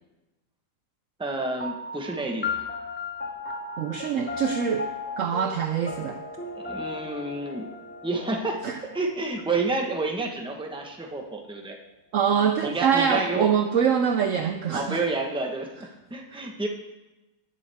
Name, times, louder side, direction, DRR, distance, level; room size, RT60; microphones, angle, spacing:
voice 1, 1.2-2.6 6.6-7.7 8.0-8.6 8.9-11.8 12.6-13.5 14.7-16.7, right 2 dB, 5° right, 2 dB, 0.9 m, -29 dB
sound 1, 1.6-10.4, left 4 dB, 15° left, 0.4 m, -36 dB
voice 2, 3.8-4.9 5.2-6.2 8.6-8.8 12.1-15.0 16.3-16.4, right 7 dB, 65° right, 7 dB, 0.8 m, -24 dB
17.5 x 7.2 x 3.5 m, 1.0 s
omnidirectional pair, 1.8 m